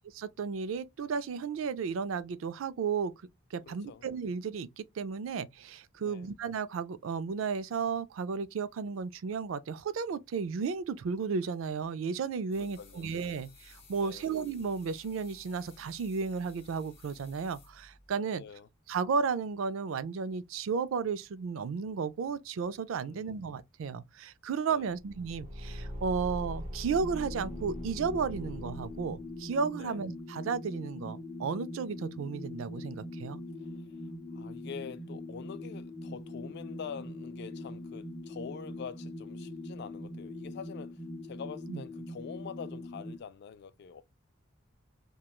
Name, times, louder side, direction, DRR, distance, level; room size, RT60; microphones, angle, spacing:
voice 1, 0.1-3.1 3.5-18.4 18.9-33.4 41.7-41.8, right 5 dB, 80° right, 0.4 m, -33 dB
voice 2, 3.7-4.1 6.0-6.3 12.6-13.1 14.0-14.3 18.3-18.7 23.0-23.4 24.7-25.0 29.8-30.0 33.6-44.0, left 6 dB, 55° left, 0.3 m, -46 dB
sound 1, 12.5-18.2, left 3 dB, 30° left, 1.0 m, -56 dB
Car / Engine, 24.9-29.4, equal, 35° right, 0.8 m, -41 dB
sound 2, 26.9-43.2, left 1 dB, 10° left, 0.6 m, -42 dB
2.9 x 2.2 x 2.2 m
head